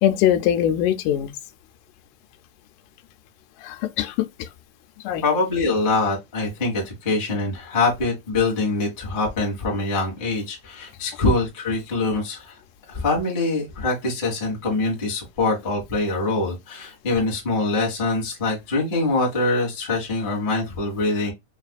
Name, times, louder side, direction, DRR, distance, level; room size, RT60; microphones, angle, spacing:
voice 1, 0.0-1.3 3.6-4.5 5.0-5.2, left 11 dB, 90° left, 2.1 m, -22 dB
voice 2, 5.2-12.6 12.9-21.3, left 3 dB, 35° left, 0.8 m, -24 dB
5.2 x 2.5 x 2.2 m
omnidirectional pair, 3.6 m